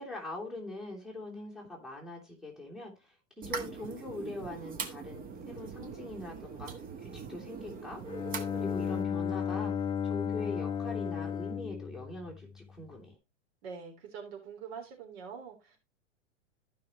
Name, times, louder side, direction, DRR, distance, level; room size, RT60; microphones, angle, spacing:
voice 1, 0.0-6.7 7.0-8.0 8.5-9.7 10.0-13.2, left 2 dB, ahead, 3.0 m, -42 dB
sound 1, 3.4-9.0, right 5 dB, 25° right, 1.4 m, -42 dB
Bowed string instrument, 8.1-12.9, left 8 dB, 15° left, 0.5 m, -34 dB
voice 2, 13.6-15.8, right 6 dB, 55° right, 3.7 m, -44 dB
14.5 x 5.7 x 3.0 m
figure-of-eight pair, 100°, 36 cm